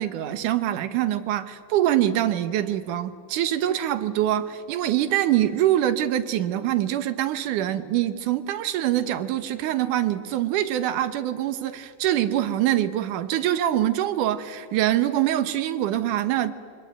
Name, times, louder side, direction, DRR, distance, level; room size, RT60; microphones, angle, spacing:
voice 1, 0.0-16.5, right 12 dB, 75° right, 11 dB, 2.6 m, -24 dB
26.0 x 23.5 x 9.1 m, 2.2 s
omnidirectional pair, 3.7 m